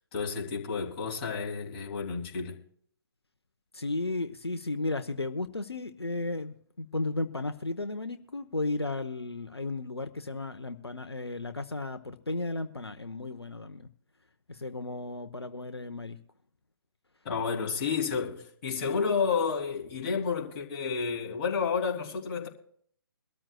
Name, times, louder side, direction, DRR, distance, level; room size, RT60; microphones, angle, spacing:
voice 1, 0.1-2.6 17.2-22.5, left 5 dB, 25° left, 2.9 m, -30 dB
voice 2, 3.7-13.9 14.5-16.2, left 2 dB, 80° left, 0.9 m, -34 dB
23.0 x 13.5 x 2.3 m
figure-of-eight pair, 135°, 13 cm